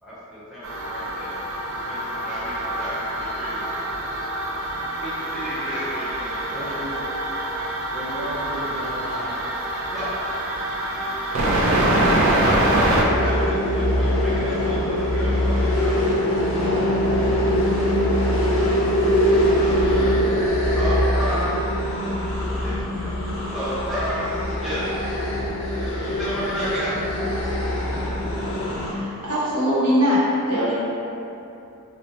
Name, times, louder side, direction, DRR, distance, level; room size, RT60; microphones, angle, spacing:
voice 1, 0.0-1.3 1.7-3.6 5.0-6.7 9.9-10.1 11.6-16.6 19.2-19.9 20.7-21.5 22.6-23.2 23.5-24.3 24.6-25.0 26.0-27.0, equal, ahead, -13 dB, 0.7 m, -33 dB
sound 1, 0.6-13.0, right 1 dB, 70° right, 0.5 m, -25 dB
voice 2, 6.5-6.9 7.9-9.3 16.6-17.4 19.9-20.3, equal, 50° right, -10 dB, 1.0 m, -34 dB
sound 2, 13.0-28.9, equal, 65° left, 0.5 m, -22 dB
voice 3, 28.8-30.7, equal, 85° right, -9 dB, 0.9 m, -21 dB
2.8 x 2.1 x 4.1 m, 2.8 s
head